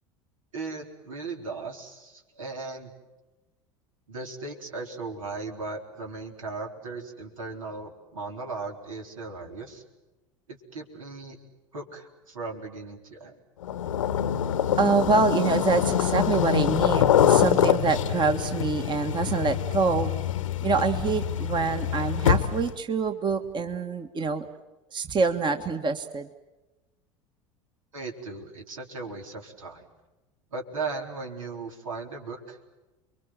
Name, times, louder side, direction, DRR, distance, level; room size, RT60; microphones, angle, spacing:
voice 1, 0.5-2.9 4.1-9.8 10.5-11.4 11.7-13.4 27.9-29.9 30.5-32.6, right 3 dB, 75° right, 2 dB, 4.0 m, -37 dB
sound 1, 13.6-22.8, left 10 dB, 75° left, 1.1 m, -25 dB
voice 2, 14.8-20.1 20.6-24.5 24.9-26.3, right 4 dB, 25° right, 7 dB, 1.7 m, -26 dB
30.0 x 23.0 x 7.5 m, 1.1 s
figure-of-eight pair, 75°, 17 cm